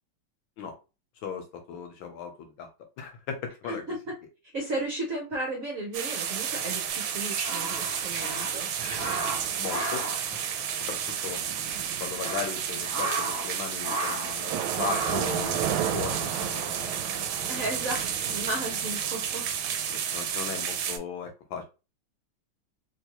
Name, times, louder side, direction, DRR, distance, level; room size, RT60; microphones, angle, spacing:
voice 1, 1.2-2.7 3.0-3.8 9.6-10.4 10.9-11.4 12.0-17.2 19.9-21.6, left 6 dB, 70° left, 5 dB, 1.3 m, -37 dB
voice 2, 3.7-4.1 4.5-8.7 17.5-19.5, right 2 dB, 55° right, 0 dB, 1.0 m, -34 dB
sound 1, 5.9-21.0, right 8 dB, 75° right, 1.4 m, -31 dB
sound 2, 7.0-11.1 11.3-11.4 11.9-13.5 13.8-14.4 14.7-15.4, right 2 dB, 10° left, 1.1 m, -34 dB
3.3 x 3.1 x 2.9 m, 0.29 s
omnidirectional pair, 2.4 m